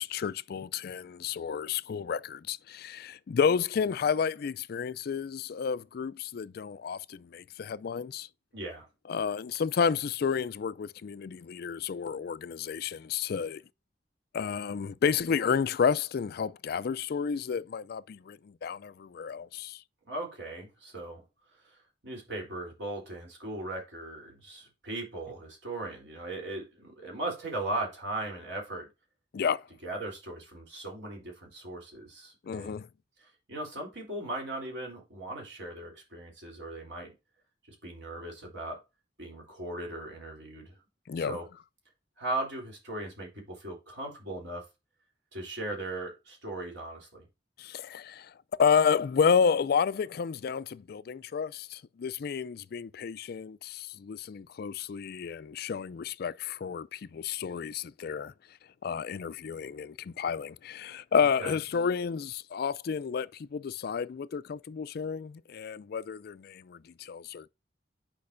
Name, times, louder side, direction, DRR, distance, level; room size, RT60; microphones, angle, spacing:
voice 1, 0.0-8.3 9.1-13.6 14.3-19.8 29.3-29.6 32.5-32.9 41.1-41.4 47.6-48.3 48.6-58.3 58.8-67.5, left 6 dB, 55° left, 0.4 m, -31 dB
voice 2, 8.5-8.9 20.0-21.2 21.7-28.9 29.8-32.8 33.2-37.1 37.7-38.8 39.2-40.7 41.1-41.5 42.2-44.6 45.3-47.2 61.2-61.5, right 2 dB, 65° right, 3.3 m, -38 dB
8.5 x 5.2 x 2.6 m
head